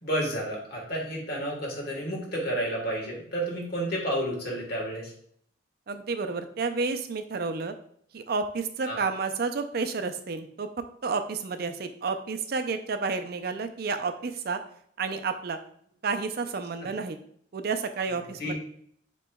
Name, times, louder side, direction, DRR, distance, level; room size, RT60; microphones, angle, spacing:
voice 1, 0.0-5.1 8.9-9.0 18.4-18.6, right 1 dB, 55° left, -1 dB, 1.4 m, -31 dB
voice 2, 5.9-7.7 8.1-10.7 11.0-14.6 15.0-15.6 16.0-17.2 17.5-18.6, right 4 dB, 55° right, 8 dB, 0.4 m, -30 dB
7.8 x 3.0 x 2.3 m, 0.64 s
head